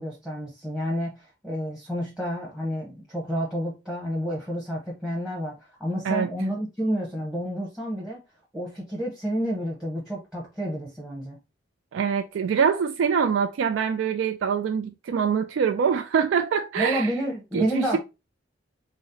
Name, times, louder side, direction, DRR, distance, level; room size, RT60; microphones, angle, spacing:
voice 1, 0.0-8.2 8.5-11.4 16.8-18.0, equal, 5° right, 0.8 m, -30 dB
voice 2, 11.9-17.1 17.5-18.0, right 6 dB, 85° right, 0.3 m, -24 dB
4.0 x 2.0 x 3.8 m
head